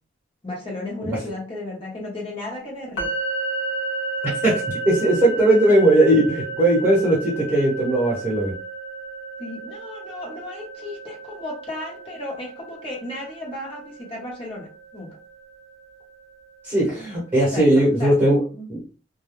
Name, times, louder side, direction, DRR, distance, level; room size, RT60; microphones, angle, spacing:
voice 1, 0.4-3.1 5.7-5.8 9.4-15.2 17.5-17.6 18.0-18.7, left 1 dB, 30° left, -3 dB, 1.0 m, -34 dB
sound 1, 3.0-16.8, right 3 dB, 90° left, 0.9 m, -33 dB
voice 2, 4.4-8.5 16.6-18.4 18.7-18.8, right 1 dB, 15° right, -7 dB, 1.0 m, -18 dB
2.3 x 2.2 x 3.1 m, 0.38 s
head